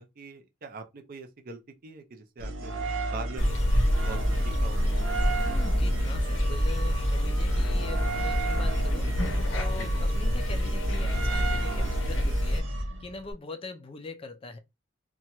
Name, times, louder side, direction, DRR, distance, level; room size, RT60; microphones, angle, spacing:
voice 1, 0.0-2.7 3.1-3.6 4.0-4.8 9.8-9.9, right 3 dB, 50° right, 0.5 m, -42 dB
sound 1, 2.4-13.3, right 1 dB, 90° right, 0.7 m, -33 dB
sound 2, 3.4-12.6, equal, 85° left, 0.6 m, -27 dB
voice 2, 5.3-14.6, left 3 dB, 30° left, 0.3 m, -42 dB
2.8 x 2.2 x 2.8 m
head